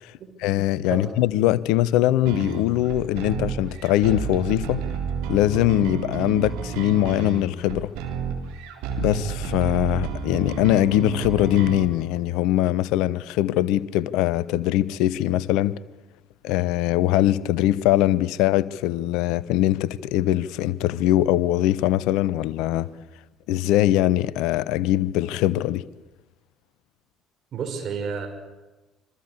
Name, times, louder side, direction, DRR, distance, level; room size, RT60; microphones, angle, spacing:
voice 1, 0.4-4.8 5.3-7.9 9.0-15.7 16.4-22.9 23.5-25.8, left 14 dB, 60° left, 0.9 m, -22 dB
sound 1, 2.3-11.9, right 5 dB, 65° right, 3.7 m, -31 dB
voice 2, 27.5-28.3, right 5 dB, 45° right, 6.2 m, -30 dB
26.5 x 24.0 x 8.4 m
figure-of-eight pair, 55°, 0 cm